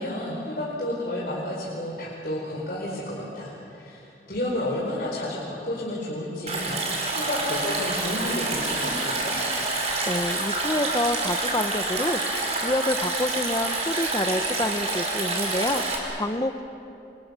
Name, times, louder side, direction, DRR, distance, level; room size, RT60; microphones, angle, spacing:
voice 1, 0.0-9.4, left 1 dB, 50° left, -5 dB, 4.6 m, -31 dB
Stream, 6.5-16.0, right 2 dB, 35° right, 5.1 m, -28 dB
voice 2, 10.1-16.6, left 1 dB, 20° left, 8 dB, 0.9 m, -28 dB
30.0 x 27.0 x 6.9 m, 2.7 s
head